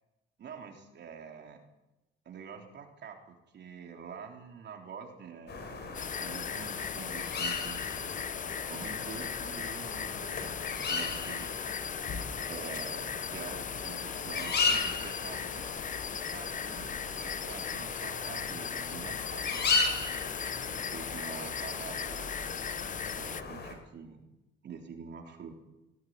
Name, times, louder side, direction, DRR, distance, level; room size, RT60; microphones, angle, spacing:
voice 1, 0.4-1.6 2.3-7.8 8.7-11.5 12.5-15.7 16.3-19.7 20.7-22.3 23.1-24.2 24.6-25.6, right 6 dB, 60° right, 2 dB, 3.7 m, -46 dB
sound 1, 5.5-23.7, left 4 dB, 60° left, 5.6 m, -36 dB
sound 2, 5.9-23.4, left 7 dB, 40° left, 0.7 m, -38 dB
20.5 x 17.0 x 9.5 m, 1.0 s
cardioid pair, 90°, 20 cm